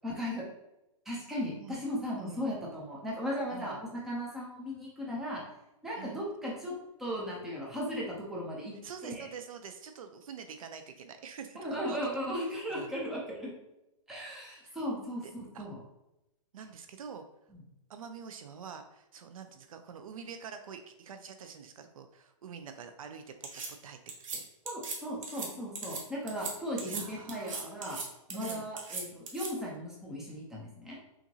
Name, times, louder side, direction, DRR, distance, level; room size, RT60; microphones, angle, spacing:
voice 1, 0.0-0.4 1.1-5.4 5.8-6.7 7.0-8.7 9.0-9.3 11.6-13.5 14.1-15.2 15.6-15.8 17.5-17.6 24.6-28.0 28.3-31.0, equal, ahead, -4 dB, 0.3 m, -37 dB
voice 2, 2.2-2.5 3.5-3.8 6.0-6.2 8.8-12.0 12.7-12.9 14.6-14.8 15.2-15.6 16.5-17.2 17.9-24.5 26.8-27.7 28.3-28.7, right 6 dB, 85° right, 7 dB, 0.5 m, -46 dB
sound 1, 23.4-23.7 24.1-24.4 24.7-25.0 25.2-25.5 25.8-26.0 26.3-26.5 26.8-27.0 27.3-28.0 28.3-29.5, right 4 dB, 70° right, 1.1 m, -38 dB
5.7 x 2.6 x 2.7 m, 0.90 s
hypercardioid pair, 170°, 17 cm